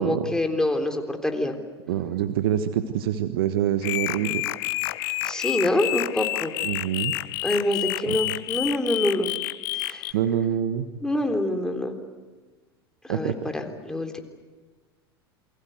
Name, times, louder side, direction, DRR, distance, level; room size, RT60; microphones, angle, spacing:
voice 1, 0.0-1.6 5.2-6.6 7.4-9.3 9.7-10.1 11.0-12.0 13.1-14.2, left 1 dB, 5° left, 4 dB, 3.7 m, -26 dB
voice 2, 1.9-4.4 6.6-7.1 8.1-8.2 10.1-10.9 13.1-13.5, right 10 dB, 65° right, 9 dB, 1.5 m, -25 dB
sound 1, 3.8-10.1, left 18 dB, 60° left, 1.0 m, -29 dB
28.0 x 23.5 x 8.1 m, 1.3 s
hypercardioid pair, 85°, 13 cm